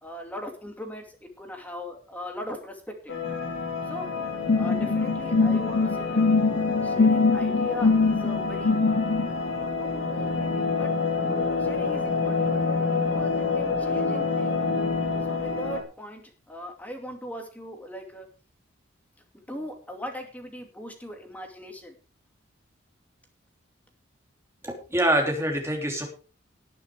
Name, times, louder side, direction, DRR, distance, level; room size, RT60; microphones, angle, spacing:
voice 1, 0.0-3.2 3.9-4.1 4.5-6.2 6.8-9.2 9.8-10.9 11.6-12.5 13.0-14.6 15.3-16.2 16.5-18.3 19.5-21.9, equal, 10° left, 4 dB, 2.4 m, -39 dB
sound 1, 3.1-15.8, left 4 dB, 80° left, 3.3 m, -28 dB
sound 2, 4.5-9.3, left 3 dB, 50° left, 0.6 m, -22 dB
voice 2, 24.6-26.1, right 1 dB, 15° right, 1 dB, 3.2 m, -25 dB
18.5 x 6.9 x 4.8 m, 0.37 s
head